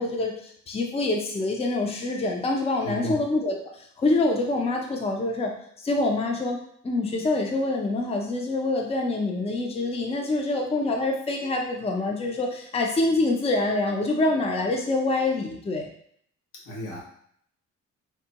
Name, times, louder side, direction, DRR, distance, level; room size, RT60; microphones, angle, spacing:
voice 1, 0.0-3.6 4.0-5.5 5.8-6.6 6.8-15.9, left 2 dB, 20° left, 1 dB, 0.5 m, -26 dB
voice 2, 2.8-3.2 16.7-17.0, right 1 dB, 85° left, -3 dB, 1.1 m, -32 dB
3.5 x 2.1 x 2.9 m, 0.66 s
cardioid pair, 90°, 30 cm